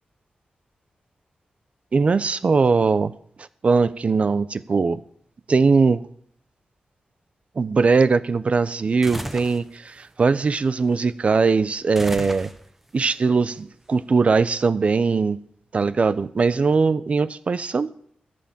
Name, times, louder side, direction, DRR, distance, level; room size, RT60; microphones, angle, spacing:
voice 1, 1.9-3.1 3.6-5.0 5.5-6.0 7.6-12.5 12.9-15.4 15.7-17.9, right 4 dB, 45° right, 0.6 m, -20 dB
sound 1, 9.0-9.6 11.9-12.9, right 1 dB, 5° right, 0.9 m, -33 dB
14.0 x 7.7 x 7.4 m
wide cardioid pair, 100°, 3 cm